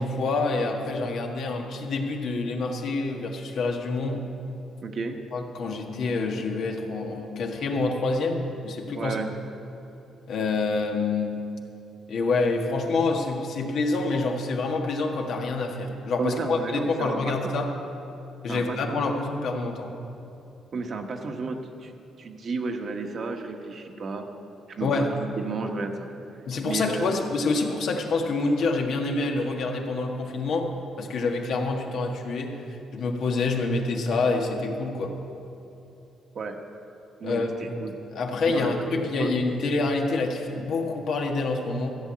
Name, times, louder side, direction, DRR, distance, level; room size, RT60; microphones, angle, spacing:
voice 1, 0.0-4.2 5.3-9.2 10.3-11.4 12.1-17.7 18.4-19.9 24.8-25.1 26.5-30.7 31.0-32.6 32.9-35.1 37.2-37.8 38.1-41.9, left 3 dB, 70° left, 2 dB, 1.5 m, -27 dB
voice 2, 4.8-5.2 9.0-9.3 16.2-17.6 18.5-19.0 20.7-21.9 22.2-24.3 24.8-25.1 25.4-26.1 26.6-27.1 36.3-36.6 37.2-37.5 37.8-37.9 38.5-39.3, right 4 dB, 50° right, 4 dB, 1.3 m, -32 dB
14.5 x 6.4 x 8.6 m, 2.9 s
cardioid pair, 90°, 0 cm